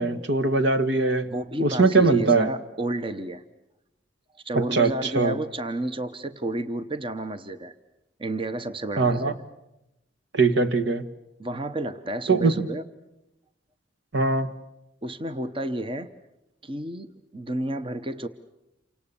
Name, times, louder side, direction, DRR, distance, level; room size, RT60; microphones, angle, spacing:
voice 1, 0.0-1.3 1.6-2.5 4.5-5.4 9.0-9.3 10.3-11.1 12.3-12.6 14.1-14.5, right 3 dB, 70° right, 10 dB, 1.6 m, -21 dB
voice 2, 1.3-3.4 4.3-7.7 8.2-9.3 11.4-12.8 15.0-16.1 16.6-18.3, right 1 dB, 30° right, 11 dB, 0.9 m, -31 dB
29.0 x 25.5 x 7.0 m, 0.91 s
head